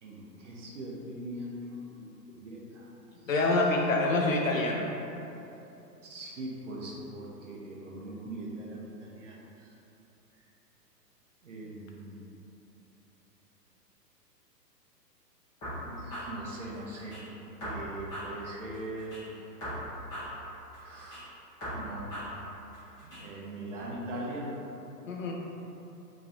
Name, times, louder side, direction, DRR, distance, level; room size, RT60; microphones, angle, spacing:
voice 1, 0.0-2.9 6.0-9.7 11.4-12.2 15.8-17.2 17.6-19.2 20.8-21.3 21.7-22.2 23.0-24.5, right 1 dB, 50° right, -3 dB, 0.7 m, -41 dB
voice 2, 3.3-4.9 25.1-25.3, left 2 dB, 55° left, 0 dB, 0.5 m, -26 dB
sound 1, 15.6-17.2 17.6-19.2 19.6-21.2 21.6-23.2, equal, 10° left, 0.6 m, -40 dB
3.0 x 2.8 x 3.6 m, 2.9 s
figure-of-eight pair, 115°, 49 cm